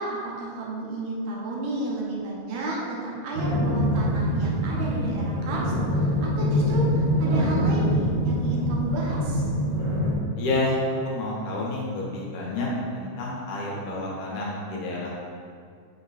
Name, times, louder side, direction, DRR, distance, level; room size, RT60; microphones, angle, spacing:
voice 1, 0.0-9.5, right 2 dB, 75° right, -4 dB, 2.2 m, -32 dB
sound 1, 3.3-10.1, equal, 40° right, 1.0 m, -24 dB
voice 2, 10.4-10.8 11.0-15.1, left 2 dB, 70° left, -4 dB, 2.4 m, -29 dB
5.7 x 4.3 x 4.1 m, 2.2 s
omnidirectional pair, 3.8 m